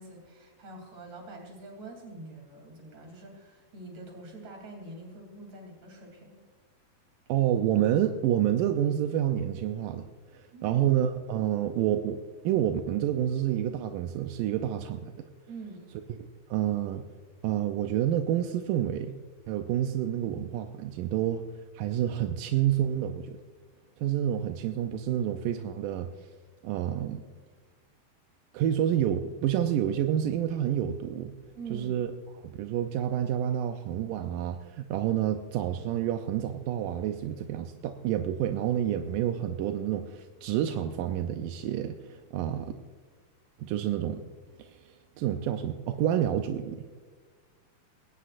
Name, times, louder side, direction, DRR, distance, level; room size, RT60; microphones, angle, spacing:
voice 1, 0.0-6.4 10.5-10.8 15.5-15.9 31.5-31.9, right 2 dB, 45° right, 2 dB, 4.1 m, -45 dB
voice 2, 7.3-10.0 10.3-15.3 16.1-16.2 16.5-17.0 17.4-19.2 19.5-21.4 21.7-23.4 24.0-26.1 26.6-27.2 28.5-31.3 31.7-32.1 32.4-42.7 43.6-44.2 44.6-46.9, right 11 dB, 80° right, 6 dB, 2.0 m, -28 dB
20.5 x 18.0 x 2.5 m, 1.4 s
omnidirectional pair, 4.3 m